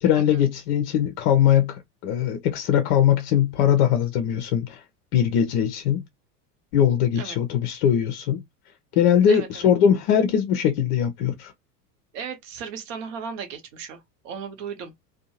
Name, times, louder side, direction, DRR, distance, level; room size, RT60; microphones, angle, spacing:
voice 1, 0.0-4.8 5.1-6.0 6.7-8.4 9.0-11.5, left 9 dB, 40° left, 0.5 m, -21 dB
voice 2, 9.3-9.7 12.1-14.9, right 6 dB, 50° right, 1.0 m, -36 dB
2.6 x 2.2 x 2.8 m
figure-of-eight pair, 80°, 49 cm